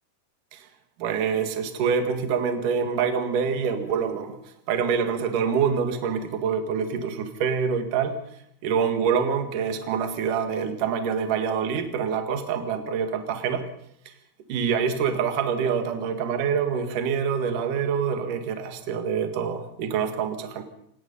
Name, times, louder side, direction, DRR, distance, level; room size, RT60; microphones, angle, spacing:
voice 1, 1.0-8.2 8.6-13.7 14.1-14.2 14.5-20.6, right 6 dB, 55° right, 6 dB, 3.0 m, -26 dB
26.5 x 18.5 x 5.5 m, 0.71 s
omnidirectional pair, 4.8 m